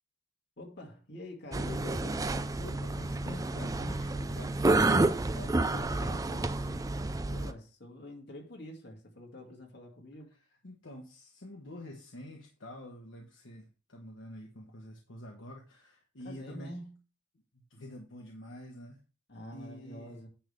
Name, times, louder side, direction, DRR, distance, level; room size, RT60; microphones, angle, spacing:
voice 1, 0.6-2.2 7.2-10.3 16.2-17.0 19.3-20.3, left 1 dB, 55° left, 2.3 m, -46 dB
sound 1, 1.5-7.5, right 2 dB, 20° right, 0.4 m, -30 dB
voice 2, 2.6-6.8 10.6-16.7 17.7-19.0 19.5-20.1, left 1 dB, 75° left, 1.3 m, -47 dB
10.0 x 3.5 x 6.7 m
head